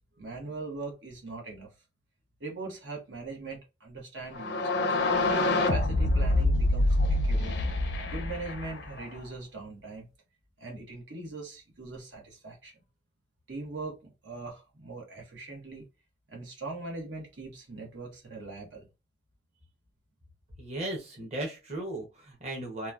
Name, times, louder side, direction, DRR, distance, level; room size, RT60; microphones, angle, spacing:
voice 1, 0.0-1.7 2.4-5.0 5.5-7.6 8.1-10.1 10.6-12.7 13.5-14.0 14.2-15.8 16.3-18.9, right 3 dB, 85° right, 0 dB, 1.1 m, -41 dB
sound 1, 4.3-9.2, left 2 dB, 65° left, 0.5 m, -26 dB
voice 2, 20.6-22.9, right 1 dB, 35° right, -1 dB, 0.8 m, -36 dB
2.9 x 2.2 x 2.4 m, 0.27 s
head